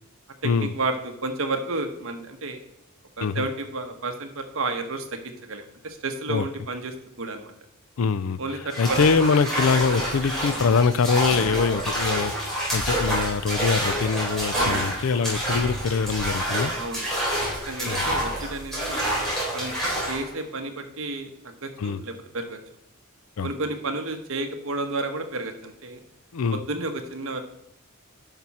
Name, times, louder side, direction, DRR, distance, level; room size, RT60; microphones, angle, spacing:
voice 1, 0.6-2.6 3.2-7.5 8.4-9.0 14.5-14.9 16.7-17.1 17.7-19.1 19.5-19.7 20.1-22.6 23.4-26.0 26.5-27.4, right 2 dB, 65° right, 6 dB, 1.1 m, -31 dB
voice 2, 8.0-8.4 8.8-16.7 17.9-18.0 21.8-22.0 23.4-23.5 26.3-26.6, left 5 dB, 70° left, 17 dB, 0.4 m, -23 dB
sound 1, 8.7-20.3, right 1 dB, ahead, 4.0 m, -27 dB
10.5 x 6.0 x 4.2 m, 0.80 s
head